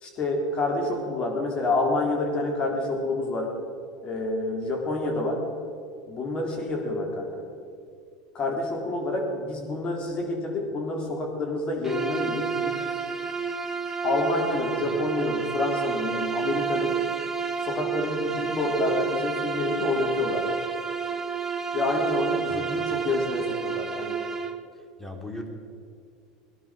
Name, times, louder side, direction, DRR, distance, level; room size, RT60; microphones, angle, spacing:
voice 1, 0.0-3.5 4.0-5.4 6.1-7.4 8.3-12.8 14.0-17.0 17.7-20.5 21.7-24.2, left 2 dB, 35° left, 1 dB, 3.9 m, -28 dB
Bowed string instrument, 11.8-24.6, right 6 dB, 15° right, 1.1 m, -30 dB
voice 2, 22.5-22.9 25.0-25.5, left 1 dB, 5° left, 3 dB, 2.6 m, -38 dB
18.5 x 11.0 x 6.5 m, 2.4 s
supercardioid pair, 105°, 3 cm